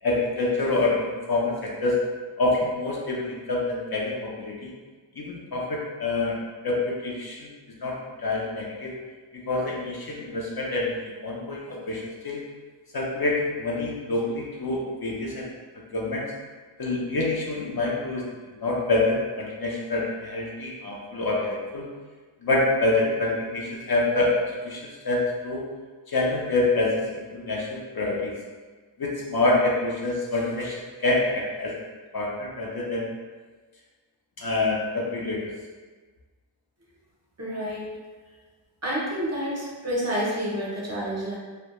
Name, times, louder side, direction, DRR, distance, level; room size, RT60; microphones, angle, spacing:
voice 1, 0.0-2.0 2.4-4.7 5.2-6.4 6.6-7.5 7.8-9.0 9.3-12.4 12.9-15.5 15.9-16.2 16.8-18.2 18.6-21.8 22.4-25.6 26.1-28.3 29.0-31.9 32.1-33.1 34.4-35.5, left 2 dB, 55° left, -3 dB, 0.5 m, -26 dB
voice 2, 37.4-37.9 38.8-41.4, equal, 35° right, -6 dB, 0.6 m, -29 dB
2.1 x 2.1 x 2.8 m, 1.4 s
wide cardioid pair, 85°, 47 cm